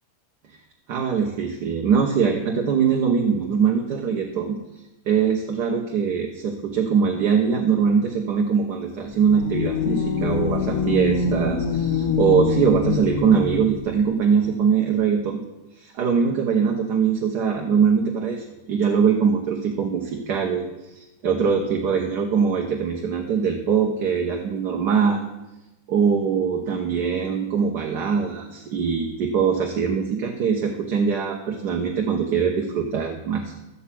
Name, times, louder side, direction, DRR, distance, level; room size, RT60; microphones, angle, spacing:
voice 1, 0.9-4.6 5.1-15.4 15.8-20.6 20.9-25.3 25.9-33.6, right 6 dB, 70° right, 2 dB, 1.6 m, -22 dB
sound 1, 9.1-13.9, left 5 dB, 70° left, 1.4 m, -24 dB
12.5 x 8.6 x 6.0 m, 0.99 s
omnidirectional pair, 1.8 m